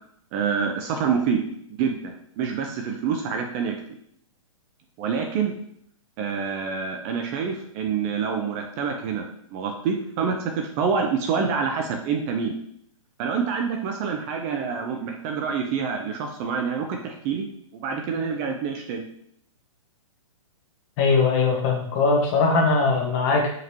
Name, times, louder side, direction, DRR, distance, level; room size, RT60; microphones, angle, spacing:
voice 1, 0.3-1.4 1.8-3.7 5.0-5.5 6.2-9.3 9.5-12.5 13.2-17.5 17.7-19.0, right 6 dB, 25° right, 3 dB, 0.4 m, -27 dB
voice 2, 21.0-23.5, left 4 dB, 35° left, 1 dB, 0.9 m, -20 dB
5.1 x 2.9 x 2.7 m, 0.68 s
hypercardioid pair, 135°, 17 cm